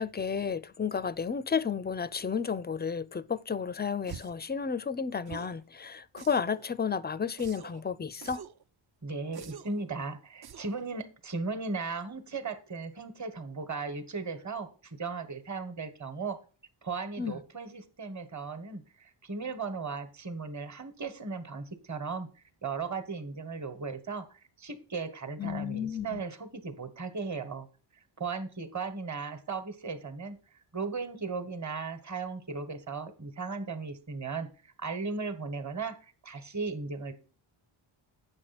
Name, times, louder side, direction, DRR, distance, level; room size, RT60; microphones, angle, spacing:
voice 1, 0.0-8.4 17.2-17.4 25.4-26.2, left 6 dB, 20° left, 0.3 m, -32 dB
sound 1, 4.1-4.5 5.3-5.6 6.2-6.7 7.4-7.8 8.2-8.6 9.3-9.8 10.4-10.8, right 7 dB, 50° right, 0.6 m, -46 dB
voice 2, 9.0-16.4 16.8-27.7 28.2-30.4 30.7-35.9 36.2-37.1, right 4 dB, 35° right, 1.3 m, -37 dB
8.8 x 6.4 x 4.2 m
wide cardioid pair, 100°, 50 cm